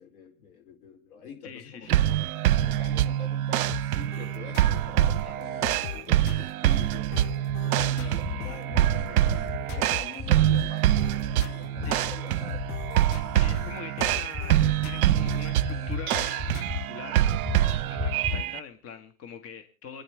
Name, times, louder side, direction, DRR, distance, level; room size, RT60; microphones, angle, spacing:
voice 1, 0.0-2.2 2.6-7.1 7.6-11.0 11.6-12.7, left 6 dB, 70° left, 3 dB, 4.7 m, -46 dB
voice 2, 1.4-2.1 11.8-12.1 13.3-17.3 17.9-20.0, left 6 dB, 30° left, 7 dB, 1.5 m, -43 dB
sound 1, 1.9-18.6, right 13 dB, 65° right, 0.7 m, -25 dB
sound 2, 3.7-16.6, left 11 dB, 55° left, 0.9 m, -41 dB
sound 3, 7.2-7.6 8.0-8.4 8.7-9.1 9.5-9.9 10.2-10.7 11.0-11.4 11.8-12.1 12.5-13.0 13.3-13.7 14.1-14.5 14.8-15.3 15.6-16.0 16.4-16.8 17.2-17.6 18.0-18.4, left 3 dB, ahead, 2.9 m, -34 dB
28.0 x 10.0 x 3.3 m, 0.38 s
hypercardioid pair, 110°, 46 cm